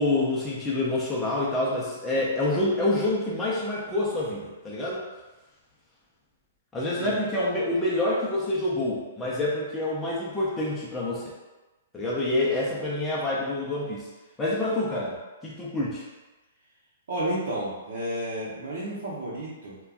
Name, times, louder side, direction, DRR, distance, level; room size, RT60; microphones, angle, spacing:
voice 1, 0.0-5.0 6.7-11.2 11.9-14.1 14.4-15.2 15.4-16.1, left 2 dB, 10° left, -6 dB, 0.5 m, -27 dB
voice 2, 17.1-19.8, right 1 dB, 75° right, -9 dB, 0.7 m, -31 dB
3.3 x 2.2 x 2.4 m, 1.1 s
hypercardioid pair, 155°, 0 cm